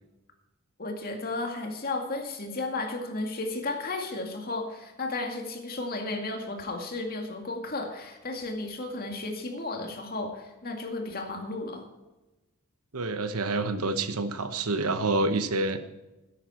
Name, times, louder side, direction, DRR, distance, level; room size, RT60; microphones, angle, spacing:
voice 1, 0.8-11.9, left 2 dB, 45° left, 3 dB, 2.1 m, -34 dB
voice 2, 12.9-15.8, right 2 dB, 85° right, 11 dB, 1.0 m, -27 dB
13.5 x 10.5 x 4.4 m, 1.1 s
head